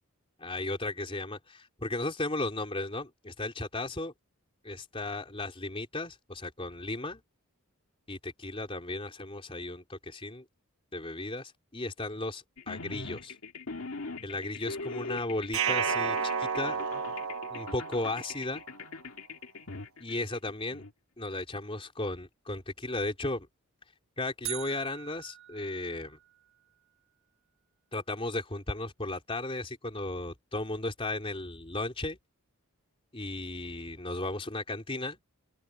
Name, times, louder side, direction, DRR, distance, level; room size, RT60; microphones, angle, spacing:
voice 1, 0.4-4.1 4.6-7.2 8.1-10.4 10.9-13.3 14.2-16.8 17.5-18.6 20.0-20.8 21.2-23.5 24.2-26.2 27.9-32.2 33.1-35.2, left 2 dB, 25° left, 3.7 m, -35 dB
sound 1, 12.6-20.9, left 3 dB, 65° left, 2.1 m, -41 dB
sound 2, 15.5-18.6, right 6 dB, 75° right, 1.1 m, -32 dB
sound 3, 24.4-26.6, right 14 dB, 60° right, 4.3 m, -42 dB
head